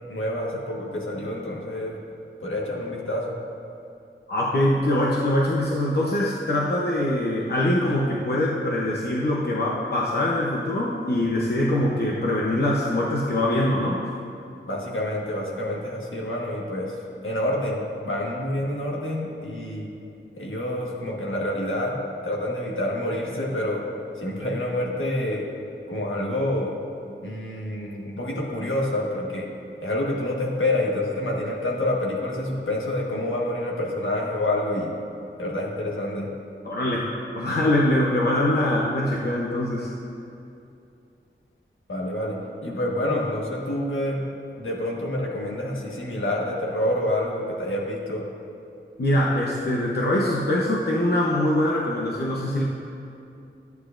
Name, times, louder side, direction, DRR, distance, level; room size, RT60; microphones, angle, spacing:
voice 1, 0.1-2.0 2.4-3.4 14.7-17.0 17.2-19.9 20.4-23.8 24.2-25.5 25.9-26.8 27.2-29.5 29.8-34.9 35.4-36.3 41.9-44.3 44.6-48.2, left 1 dB, 75° left, -3 dB, 1.5 m, -27 dB
voice 2, 4.3-14.1 36.6-37.1 37.4-39.9 49.0-52.6, left 1 dB, 50° left, -3 dB, 0.8 m, -23 dB
11.5 x 9.4 x 2.5 m, 2.7 s
wide cardioid pair, 80°, 21 cm